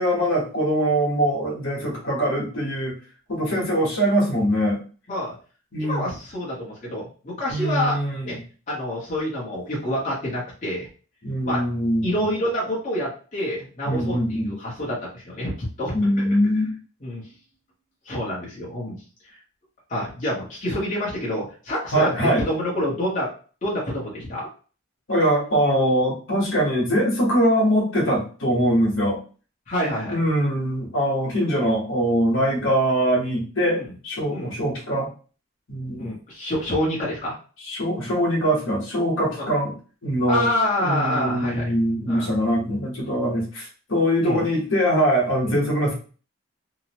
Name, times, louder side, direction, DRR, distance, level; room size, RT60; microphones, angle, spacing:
voice 1, 0.0-2.9 3.3-4.8 5.7-6.1 7.5-8.4 11.2-12.3 13.8-14.6 15.9-16.7 21.9-22.4 25.1-29.2 30.1-35.1 35.7-36.1 37.6-39.7 40.0-40.5 40.8-45.9, equal, 70° left, -2 dB, 1.1 m, -22 dB
voice 2, 5.8-8.4 8.7-10.9 11.4-11.6 12.0-16.3 17.0-17.3 18.0-19.0 19.2-19.4 19.9-23.3 23.6-24.5 29.7-30.2 33.6-33.9 34.3-34.6 36.0-37.4 39.4-39.5 40.3-41.7 42.1-42.3 44.2-44.4 45.4-45.7, left 1 dB, 35° left, -5 dB, 0.9 m, -27 dB
2.8 x 2.0 x 2.8 m, 0.37 s
head